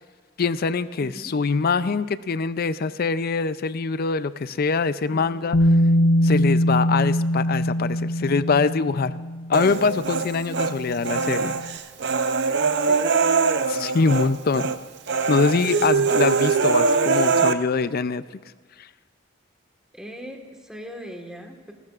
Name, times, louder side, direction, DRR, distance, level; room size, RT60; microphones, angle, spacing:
voice 1, 0.4-5.6 6.2-9.1 9.5-11.6 13.7-14.7 15.3-18.2, left 4 dB, 50° left, 14 dB, 0.5 m, -23 dB
voice 2, 1.0-1.3 5.1-5.7 6.0-6.1 10.8-11.0 12.8-13.1 19.9-21.7, equal, 5° right, 2 dB, 1.5 m, -40 dB
Bass guitar, 5.5-11.6, equal, 90° left, 0.7 m, -23 dB
Human voice, 9.5-10.7 11.0-14.3 14.5-14.8 15.1-17.5, right 4 dB, 60° right, 0.6 m, -22 dB
28.5 x 13.0 x 2.5 m, 1.5 s
head